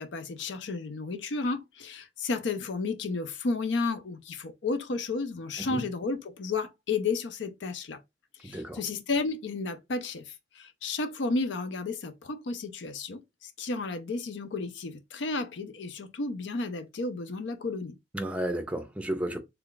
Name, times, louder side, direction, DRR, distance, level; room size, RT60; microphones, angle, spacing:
voice 1, 0.0-8.0 8.4-18.0, left 3 dB, 85° left, 0.6 m, -32 dB
voice 2, 8.4-8.8 18.1-19.4, right 1 dB, 10° right, 0.6 m, -32 dB
3.4 x 2.3 x 3.9 m
head